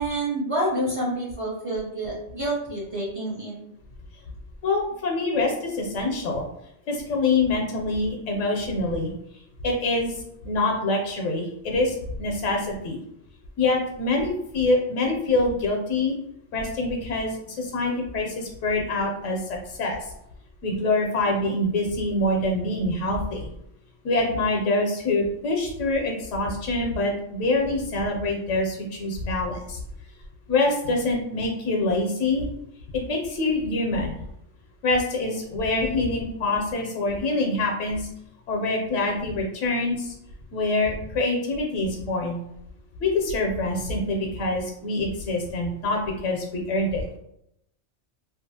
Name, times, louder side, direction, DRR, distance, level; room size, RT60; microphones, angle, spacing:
voice 1, 0.0-3.5, right 1 dB, 35° right, -5 dB, 0.6 m, -28 dB
voice 2, 4.6-6.5 6.9-9.1 9.6-13.0 13.6-16.2 16.5-20.1 20.6-23.5 24.0-29.8 30.5-32.5 32.9-34.2 34.8-38.1 38.5-40.1 40.5-42.4 43.0-47.2, left 2 dB, 80° left, 1 dB, 0.9 m, -25 dB
2.7 x 2.3 x 2.7 m, 0.77 s
omnidirectional pair, 1.3 m